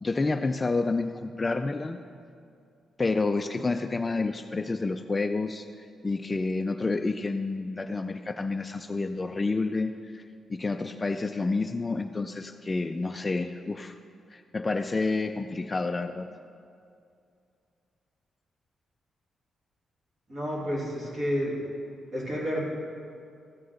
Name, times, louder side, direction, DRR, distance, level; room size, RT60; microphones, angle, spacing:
voice 1, 0.0-2.0 3.0-10.2 10.5-14.0 14.3-16.3, left 3 dB, 20° left, 7 dB, 0.3 m, -29 dB
voice 2, 20.3-21.5 22.1-22.6, equal, 40° right, -4 dB, 2.8 m, -30 dB
15.0 x 5.8 x 6.4 m, 2.4 s
wide cardioid pair, 160°, 0 cm